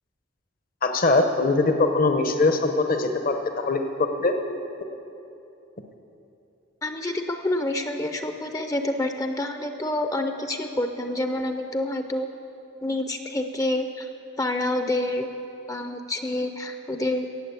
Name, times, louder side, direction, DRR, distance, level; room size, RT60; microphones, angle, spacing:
voice 1, 0.8-4.3, left 3 dB, 45° left, 6 dB, 0.8 m, -22 dB
voice 2, 6.8-12.3 12.8-14.1 14.4-15.3 15.7-17.3, left 1 dB, 15° left, 6 dB, 0.6 m, -27 dB
17.5 x 7.5 x 8.2 m, 2.9 s
head